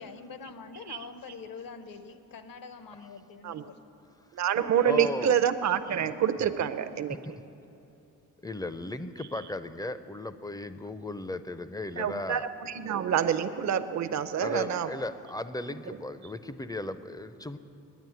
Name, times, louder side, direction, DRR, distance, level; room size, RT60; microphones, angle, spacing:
voice 1, 0.0-3.8, left 5 dB, 65° left, 10 dB, 0.9 m, -44 dB
voice 2, 4.3-7.2 11.9-14.9, right 9 dB, 50° right, 11 dB, 0.6 m, -27 dB
voice 3, 4.8-5.4 5.9-6.1 7.1-7.4 8.4-12.4 14.4-17.6, left 2 dB, 10° left, 12 dB, 0.5 m, -36 dB
9.5 x 9.3 x 9.4 m, 2.8 s
cardioid pair, 75°, 37 cm